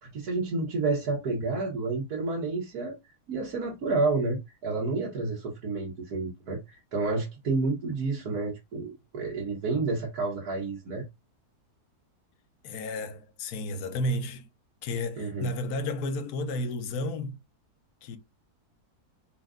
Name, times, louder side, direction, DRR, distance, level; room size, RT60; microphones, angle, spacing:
voice 1, 0.0-2.9 3.3-11.1 15.2-15.5, right 3 dB, 70° right, 1.6 m, -30 dB
voice 2, 12.6-14.5 14.8-17.4 18.0-18.2, left 1 dB, 75° left, 1.2 m, -32 dB
4.4 x 2.4 x 3.6 m
omnidirectional pair, 1.7 m